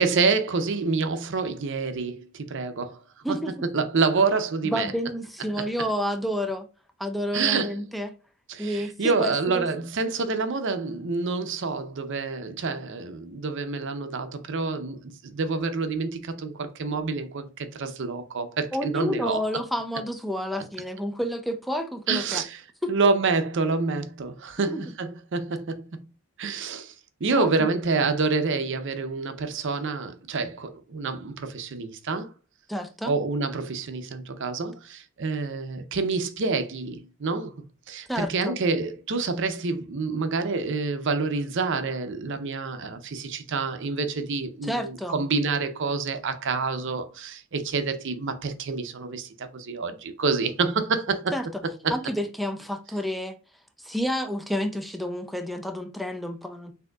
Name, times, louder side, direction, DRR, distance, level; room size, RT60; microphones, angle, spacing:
voice 1, 0.0-3.0 3.3-3.4 3.7-4.9 5.6-5.7 7.3-7.9 8.5-19.4 22.1-22.6 22.9-26.0 26.4-26.9 27.2-32.3 33.1-37.5 37.9-51.3 51.8-51.9, right 4 dB, 60° right, 0.6 m, -27 dB
voice 2, 3.2-3.5 4.6-6.7 7.0-8.1 8.6-9.7 18.7-22.4 22.8-22.9 24.7-24.8 27.4-27.5 32.7-33.1 38.1-38.6 44.6-45.2 51.3-51.5 51.9-53.4 53.8-56.7, equal, ahead, 0.4 m, -29 dB
6.2 x 2.7 x 2.3 m
head